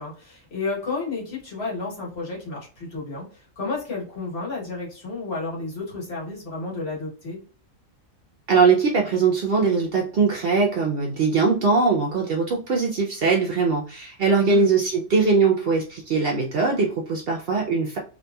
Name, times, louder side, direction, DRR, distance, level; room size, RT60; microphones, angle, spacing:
voice 1, 0.0-7.4 14.4-14.7, left 3 dB, 55° left, -4 dB, 1.4 m, -31 dB
voice 2, 8.5-18.0, right 4 dB, 60° right, 0 dB, 0.6 m, -21 dB
2.8 x 2.6 x 2.2 m, 0.39 s
omnidirectional pair, 1.3 m